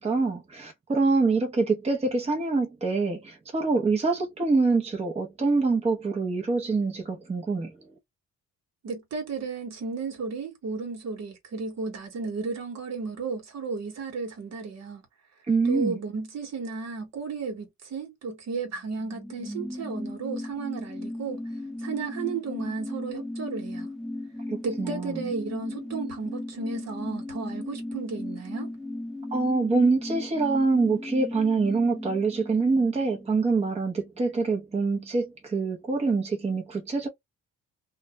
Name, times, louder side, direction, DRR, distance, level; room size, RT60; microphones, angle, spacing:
voice 1, 0.0-7.7 15.5-16.0 24.5-25.2 29.3-37.1, right 3 dB, 20° right, 0.7 m, -25 dB
voice 2, 8.8-15.0 15.6-21.4 21.8-23.9 24.6-28.7, right 4 dB, 60° right, 1.1 m, -34 dB
sound 1, 18.7-33.9 34.2-34.3, left 1 dB, ahead, 0.3 m, -36 dB
2.3 x 2.2 x 2.7 m
cardioid pair, 90°, 30 cm